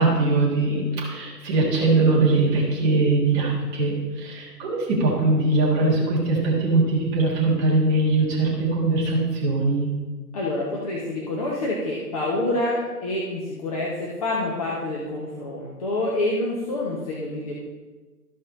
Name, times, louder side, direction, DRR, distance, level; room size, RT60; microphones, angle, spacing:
voice 1, 0.0-9.9, right 2 dB, 15° right, -5 dB, 1.5 m, -21 dB
voice 2, 10.3-17.5, left 2 dB, 25° left, -4 dB, 0.9 m, -27 dB
13.0 x 5.4 x 4.1 m, 1.3 s
hypercardioid pair, 155°, 48 cm